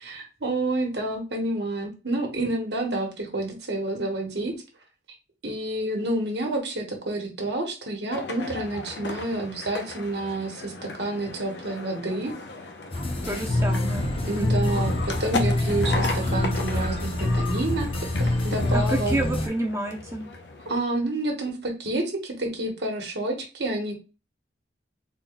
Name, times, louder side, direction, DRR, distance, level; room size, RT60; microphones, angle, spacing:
voice 1, 0.0-4.5 5.4-12.3 14.2-17.9 18.2-19.2 20.6-23.9, right 2 dB, 70° right, 1 dB, 1.1 m, -29 dB
sound 1, 8.1-20.8, left 3 dB, 70° left, 0.7 m, -36 dB
sound 2, 12.9-19.5, left 1 dB, 30° left, 0.5 m, -25 dB
voice 2, 13.2-14.1 14.4-14.7 18.7-20.2, right 1 dB, 15° right, 3 dB, 0.5 m, -29 dB
3.9 x 2.2 x 3.8 m, 0.30 s
head